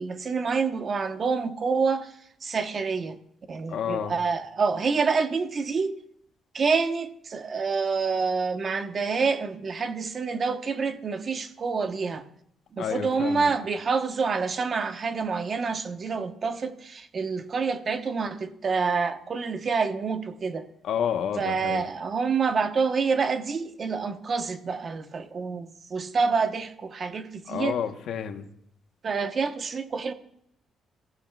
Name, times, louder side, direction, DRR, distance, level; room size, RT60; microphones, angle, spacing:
voice 1, 0.0-2.1 2.4-3.2 3.5-5.9 6.5-12.2 12.7-20.6 21.4-27.8 29.0-30.1, right 5 dB, 45° right, 1.1 m, -27 dB
voice 2, 3.7-4.1 12.8-13.5 20.8-21.8 27.5-28.4, left 8 dB, 75° left, 1.1 m, -29 dB
23.0 x 14.5 x 2.4 m
cardioid pair, 90°, 0 cm